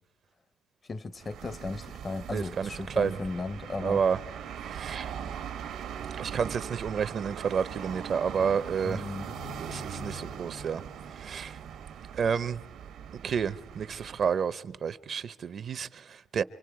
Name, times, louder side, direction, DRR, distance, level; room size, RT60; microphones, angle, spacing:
voice 1, 0.9-4.0 8.8-9.3, left 3 dB, 35° left, 0.6 m, -36 dB
sound 1, 1.2-14.4, right 7 dB, 85° right, 1.2 m, -40 dB
voice 2, 2.3-2.7 3.0-3.2 3.8-4.2 4.7-5.1 6.2-9.0 9.6-10.8 11.2-11.6 12.2-12.6 13.2-16.4, right 6 dB, 55° right, 0.6 m, -30 dB
26.0 x 24.0 x 4.7 m
cardioid pair, 90°, 0 cm